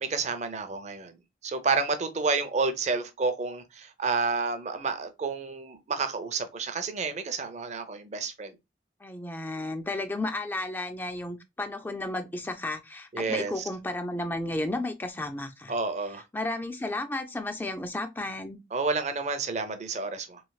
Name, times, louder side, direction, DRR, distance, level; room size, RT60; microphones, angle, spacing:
voice 1, 0.0-8.6 13.1-13.6 15.7-16.2 18.7-20.4, right 4 dB, 40° right, 0.5 m, -30 dB
voice 2, 9.0-15.7 16.1-18.6, left 2 dB, 10° left, 0.3 m, -33 dB
3.1 x 3.1 x 2.3 m
head